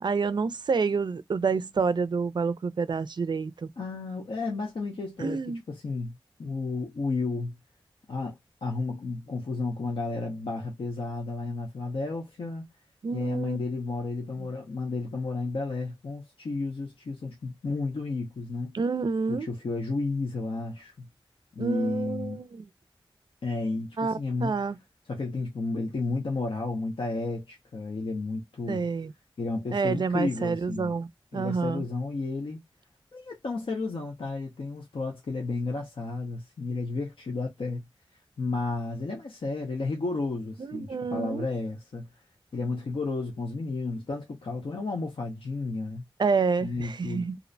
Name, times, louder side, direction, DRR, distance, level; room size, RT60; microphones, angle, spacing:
voice 1, 0.0-3.7 5.2-5.6 13.0-13.6 14.4-14.5 18.7-19.5 21.6-22.7 24.0-24.8 28.7-29.1 29.7-31.1 31.3-31.8 40.6-41.5 46.2-47.4, right 5 dB, 55° right, 0.3 m, -28 dB
voice 2, 3.8-5.4 5.7-7.6 8.1-12.7 13.1-18.7 19.3-21.1 21.6-22.4 23.4-24.5 25.1-28.9 29.4-31.0 31.3-32.6 33.1-37.8 38.4-42.1 42.5-46.0 46.6-47.3, left 3 dB, 75° left, 0.6 m, -32 dB
2.5 x 2.1 x 2.5 m
wide cardioid pair, 65°, 9 cm